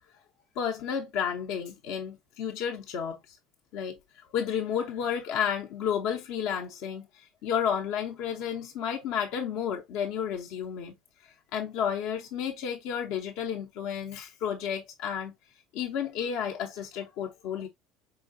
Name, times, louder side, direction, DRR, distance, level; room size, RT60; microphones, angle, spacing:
voice 1, 0.6-3.4 3.7-10.9 11.2-15.3 15.7-17.7, left 8 dB, 65° left, 0.6 m, -32 dB
4.9 x 3.2 x 2.5 m
hypercardioid pair, 70°, 0 cm